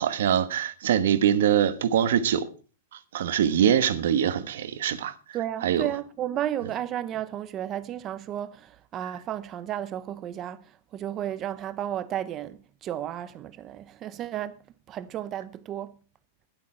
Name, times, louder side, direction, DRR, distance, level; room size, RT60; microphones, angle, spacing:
voice 1, 0.0-2.5 2.9-5.1 5.6-5.8, right 9 dB, 75° right, 1.2 m, -23 dB
voice 2, 5.3-16.0, right 11 dB, 25° right, 0.7 m, -33 dB
12.5 x 11.0 x 4.4 m
supercardioid pair, 170°, 0 cm